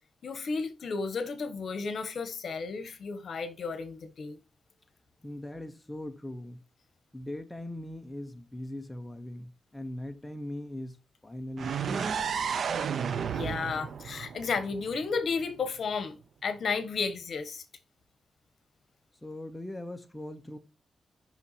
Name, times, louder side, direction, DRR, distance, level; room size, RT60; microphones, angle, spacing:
voice 1, 0.2-4.4 13.1-16.2 16.4-17.6, left 5 dB, 60° left, 1.1 m, -33 dB
voice 2, 5.2-6.6 7.1-12.2 19.2-20.6, left 1 dB, 10° left, 0.6 m, -40 dB
sound 1, 11.6-15.4, right 7 dB, 65° right, 0.5 m, -33 dB
5.7 x 5.6 x 4.1 m
wide cardioid pair, 135°, 0 cm